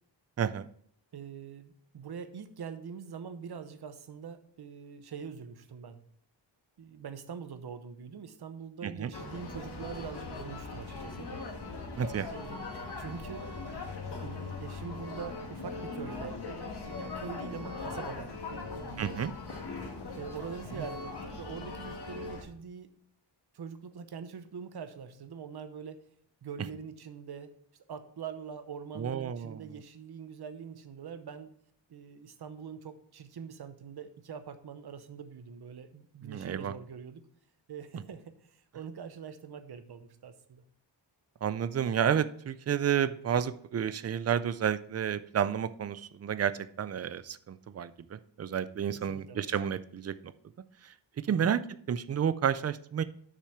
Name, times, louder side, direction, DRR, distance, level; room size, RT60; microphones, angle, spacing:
voice 1, 0.4-0.7 8.8-9.1 12.0-12.3 19.0-19.3 29.0-29.7 36.2-36.7 41.4-50.1 51.2-51.6 51.9-53.0, right 8 dB, 35° right, 14 dB, 0.4 m, -31 dB
voice 2, 1.1-6.0 6.8-11.3 12.3-13.4 14.2-16.4 17.0-19.3 20.2-22.9 23.5-26.0 26.4-27.5 27.9-31.5 31.9-37.3 37.7-40.6 48.9-49.5 51.3-51.5, right 6 dB, 60° right, 10 dB, 0.9 m, -44 dB
sound 1, 9.1-22.4, left 3 dB, 60° left, 1.7 m, -40 dB
6.7 x 6.3 x 5.8 m, 0.62 s
wide cardioid pair, 175°, 45 cm